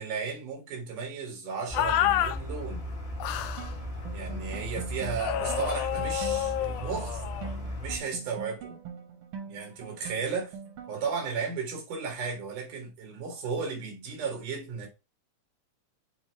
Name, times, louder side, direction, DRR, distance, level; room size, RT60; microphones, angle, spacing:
voice 1, 0.0-2.9 4.1-7.2 7.8-8.8 9.5-10.5 10.9-14.9, right 5 dB, 85° right, 3.5 m, -34 dB
sound 1, 1.7-2.4 3.2-3.7 5.2-7.5, left 11 dB, 80° left, 2.0 m, -29 dB
sound 2, 1.7-8.0, left 1 dB, 30° left, 1.3 m, -37 dB
sound 3, 3.6-11.2, right 6 dB, 70° right, 1.2 m, -44 dB
7.1 x 2.9 x 4.6 m
omnidirectional pair, 3.5 m